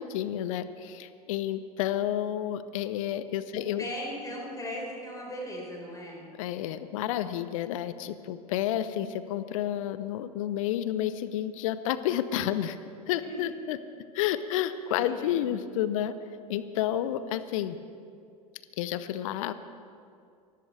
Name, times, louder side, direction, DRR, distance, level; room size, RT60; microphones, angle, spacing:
voice 1, 0.0-3.9 6.4-12.8 13.1-13.8 14.1-16.1 16.5-17.8 18.8-19.5, left 11 dB, 55° left, 13 dB, 0.7 m, -30 dB
voice 2, 3.5-6.2 13.2-13.4 15.0-15.5, equal, 15° left, -2 dB, 4.8 m, -38 dB
24.0 x 13.5 x 3.4 m, 2.4 s
figure-of-eight pair, 80°, 20 cm